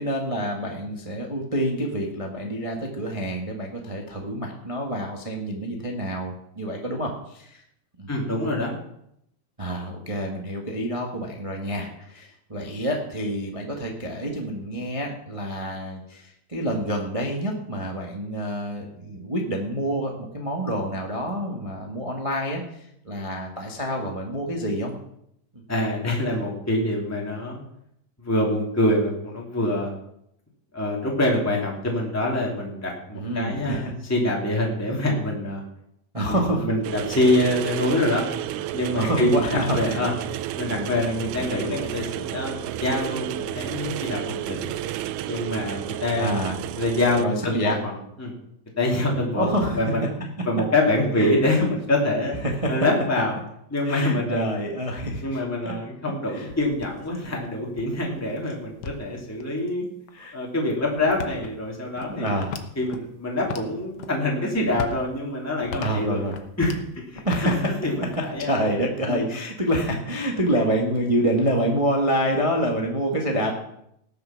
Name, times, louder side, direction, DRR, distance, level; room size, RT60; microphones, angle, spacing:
voice 1, 0.0-7.6 8.0-8.1 9.6-16.2 16.5-22.6 23.0-24.9 33.1-33.9 36.1-36.7 39.0-40.1 40.7-40.9 46.1-46.6 47.2-47.8 49.4-49.8 51.2-51.3 52.4-52.7 53.9-55.4 55.6-55.7 56.3-56.5 60.1-60.3 62.1-62.5 65.7-66.3 67.2-67.8 68.5-73.5, equal, 60° right, 0 dB, 0.3 m, -27 dB
voice 2, 8.1-8.7 25.7-27.6 28.2-29.9 30.7-35.6 36.3-38.3 38.5-40.1 40.6-44.8 45.3-46.3 46.7-48.3 48.8-50.0 50.4-52.3 52.7-53.3 53.7-54.4 55.2-59.9 60.3-62.4 62.8-66.2 66.6-66.8 67.1-68.5 69.1-69.2, left 1 dB, 5° left, -2 dB, 2.4 m, -25 dB
sound 1, 36.8-47.3, right 12 dB, 80° right, 1.9 m, -31 dB
sound 2, 56.3-59.4 60.1-60.2 60.8-63.0 63.4-64.1 64.5-66.9 67.1-68.4, left 6 dB, 65° left, 1.5 m, -38 dB
19.0 x 6.9 x 5.9 m, 0.76 s
omnidirectional pair, 3.9 m